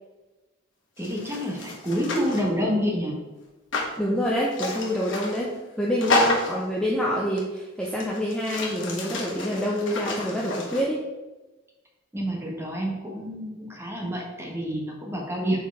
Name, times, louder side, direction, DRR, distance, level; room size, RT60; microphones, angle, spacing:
sound 1, 1.0-2.5 3.7-3.9 4.5-5.5 6.0-6.6 7.4-7.5 7.8-10.8, left 2 dB, 80° left, 1.3 m, -29 dB
voice 1, 1.0-3.2 12.1-15.6, equal, 15° right, -1 dB, 1.2 m, -28 dB
voice 2, 4.0-5.5 5.8-11.0, equal, 5° left, -5 dB, 0.6 m, -26 dB
4.6 x 4.5 x 4.7 m, 1.1 s
head